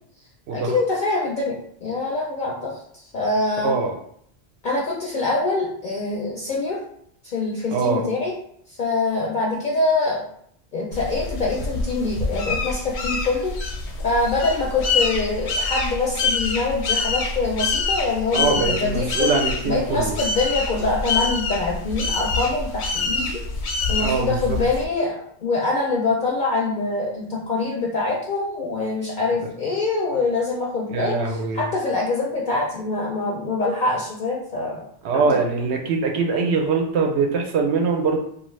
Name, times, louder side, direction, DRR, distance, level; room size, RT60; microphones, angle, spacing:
voice 1, 0.5-1.6 1.8-3.7 4.6-6.8 7.2-8.4 8.7-10.2 10.7-13.5 14.0-19.3 19.6-23.4 23.9-34.9 35.1-35.4, left 3 dB, 55° left, -3 dB, 0.6 m, -24 dB
voice 2, 3.6-3.9 7.7-8.0 18.3-20.2 24.0-24.6 30.9-31.7 35.0-38.2, right 4 dB, 75° right, 2 dB, 0.8 m, -23 dB
sound 1, 10.9-24.8, left 4 dB, 80° left, 0.8 m, -26 dB
2.7 x 2.3 x 3.1 m, 0.67 s
omnidirectional pair, 1.1 m